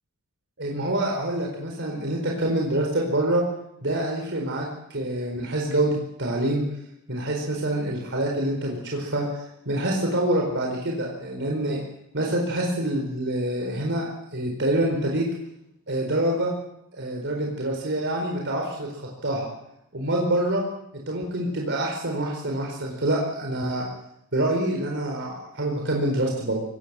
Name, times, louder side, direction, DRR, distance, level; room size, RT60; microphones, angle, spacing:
voice 1, 0.6-3.4 3.8-6.6 7.1-11.8 12.1-15.3 15.9-16.5 16.9-19.5 19.9-20.6 21.1-23.9 24.3-26.6, right 1 dB, 55° right, 0 dB, 4.5 m, -26 dB
23.0 x 19.5 x 7.5 m, 0.80 s
head